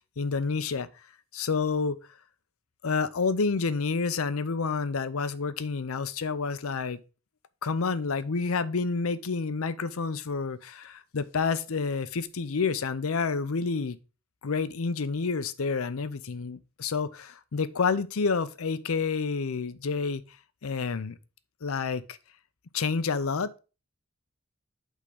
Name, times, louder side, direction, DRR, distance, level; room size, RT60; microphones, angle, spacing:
voice 1, 0.2-0.9 1.3-2.0 2.8-7.0 7.6-14.0 14.4-20.2 20.6-21.1 21.6-22.2 22.7-23.6, left 4 dB, 80° left, 0.6 m, -29 dB
8.4 x 3.7 x 5.0 m
head